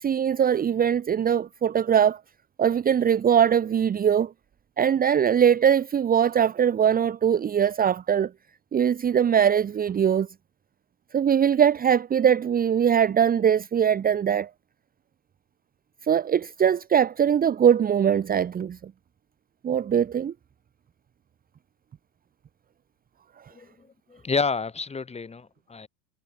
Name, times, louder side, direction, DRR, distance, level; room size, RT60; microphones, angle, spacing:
voice 1, 0.0-2.2 2.6-4.3 4.8-8.3 8.7-10.3 11.1-14.5 16.0-18.9 19.6-20.3, right 8 dB, 20° right, 1.4 m, -21 dB
voice 2, 23.5-25.9, left 4 dB, 15° left, 6.0 m, -30 dB
supercardioid pair, 125°, 44 cm